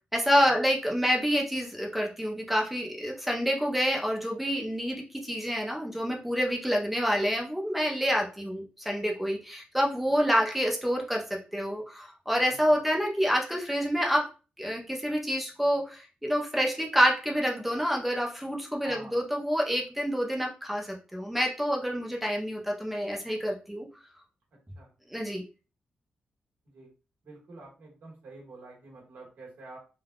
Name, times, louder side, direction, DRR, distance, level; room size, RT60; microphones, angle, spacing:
voice 1, 0.1-14.3 14.6-23.9 25.1-25.4, equal, 5° right, 0 dB, 0.6 m, -28 dB
voice 2, 12.5-12.8 18.8-19.2 24.7-24.9 26.6-26.9 27.2-29.8, right 2 dB, 85° right, -3 dB, 1.4 m, -47 dB
3.4 x 2.3 x 2.3 m, 0.32 s
wide cardioid pair, 150°, 3 cm